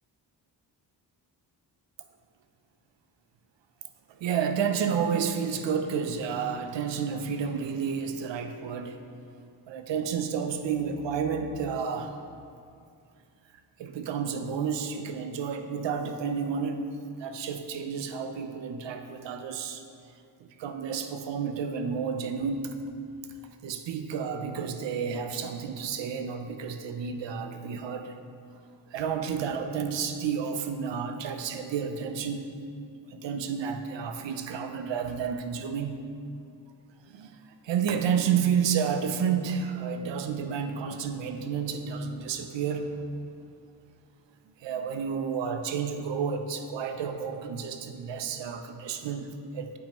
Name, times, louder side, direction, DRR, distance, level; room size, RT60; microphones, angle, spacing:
voice 1, 4.1-9.0 9.7-12.2 13.8-16.9 17.2-19.8 20.6-22.8 23.6-28.2 28.9-32.5 33.1-36.0 37.1-37.4 37.6-42.9 44.6-49.8, right 6 dB, 80° right, 7 dB, 0.6 m, -31 dB
8.0 x 5.4 x 3.0 m, 2.4 s
wide cardioid pair, 110°, 43 cm